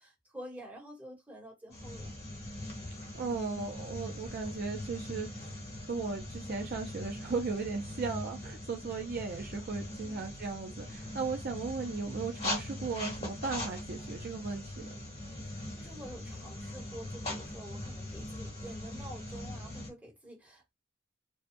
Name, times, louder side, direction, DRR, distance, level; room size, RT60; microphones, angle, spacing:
voice 1, 0.0-2.1 9.9-10.3 15.2-20.7, equal, 10° right, 1.1 m, -49 dB
sound 1, 1.7-19.9, left 1 dB, 30° left, 1.2 m, -41 dB
voice 2, 3.1-5.5 5.8-14.9, right 4 dB, 50° right, 0.5 m, -36 dB
2.7 x 2.2 x 2.5 m
head